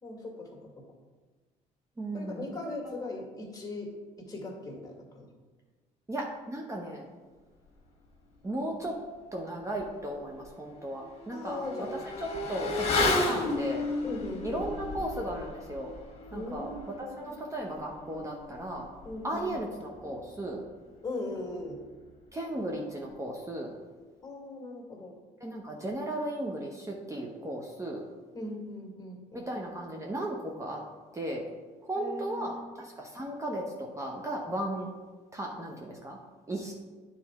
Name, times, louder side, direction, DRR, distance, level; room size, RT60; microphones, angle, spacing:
voice 1, 0.0-0.8 2.1-3.9 4.2-5.3 11.3-11.9 14.0-14.7 16.3-17.4 19.0-19.6 21.0-21.8 24.2-25.1 28.3-29.5 32.0-32.6, left 2 dB, 25° left, -1 dB, 2.0 m, -39 dB
voice 2, 2.0-2.5 6.1-7.1 8.4-9.0 9.3-11.9 12.5-13.8 14.4-15.9 16.3-18.9 19.2-20.6 22.3-23.7 25.4-28.0 29.3-30.8 31.1-31.5 31.9-34.9 35.3-36.2 36.5-36.7, right 1 dB, 20° right, 0 dB, 0.9 m, -35 dB
Motorcycle / Accelerating revving vroom, 9.8-9.9 10.3-20.3 20.6-20.7, left 2 dB, 45° left, 1.8 m, -34 dB
9.5 x 4.2 x 3.6 m, 1.3 s
supercardioid pair, 85°, 15 cm